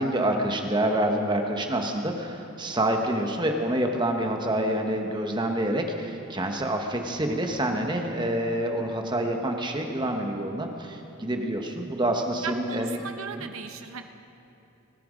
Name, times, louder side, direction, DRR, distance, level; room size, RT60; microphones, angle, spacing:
voice 1, 0.0-13.0 13.4-13.5, right 1 dB, 20° right, 3 dB, 1.1 m, -27 dB
voice 2, 12.4-14.0, right 6 dB, 65° right, 7 dB, 0.9 m, -37 dB
24.5 x 10.0 x 5.1 m, 2.9 s
head